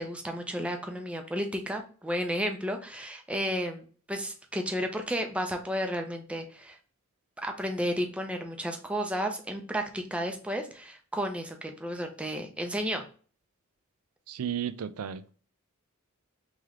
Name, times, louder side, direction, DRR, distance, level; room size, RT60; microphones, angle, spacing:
voice 1, 0.0-6.8 7.4-13.0, equal, 5° right, 0.6 m, -32 dB
voice 2, 14.3-15.3, right 9 dB, 85° right, 0.4 m, -34 dB
3.2 x 3.1 x 3.6 m
head